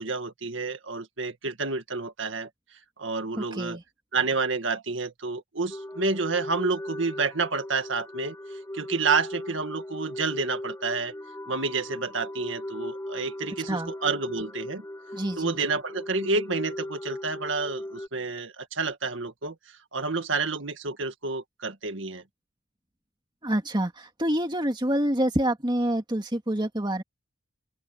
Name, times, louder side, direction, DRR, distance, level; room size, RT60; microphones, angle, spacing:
voice 1, 0.0-2.5 3.0-3.8 4.1-8.4 8.7-11.1 11.5-14.8 15.4-22.2, right 4 dB, 75° right, 1.9 m, -29 dB
voice 2, 3.4-3.8 13.7-13.9 15.1-15.6 23.4-27.0, right 1 dB, 25° right, 2.1 m, -27 dB
sound 1, 5.7-18.1, left 1 dB, 15° left, 3.5 m, -38 dB
open air
head